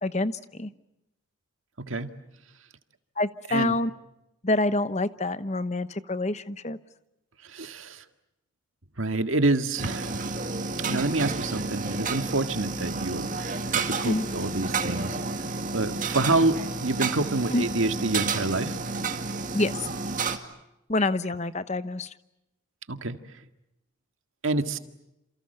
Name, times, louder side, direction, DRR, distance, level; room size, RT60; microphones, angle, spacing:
voice 1, 0.0-0.7 3.2-3.9 4.4-6.8 10.9-11.0 14.0-14.3 17.5-17.7 19.5-19.9 20.9-22.1, left 2 dB, 35° left, 13 dB, 1.0 m, -27 dB
voice 2, 1.8-2.1 3.5-3.7 7.5-8.0 9.0-10.4 10.8-15.2 15.7-18.8 22.9-23.2 24.4-24.8, right 2 dB, 80° right, 8 dB, 1.9 m, -27 dB
sound 1, 9.8-20.4, right 4 dB, 40° right, 2.1 m, -31 dB
29.0 x 28.5 x 6.8 m, 0.89 s
head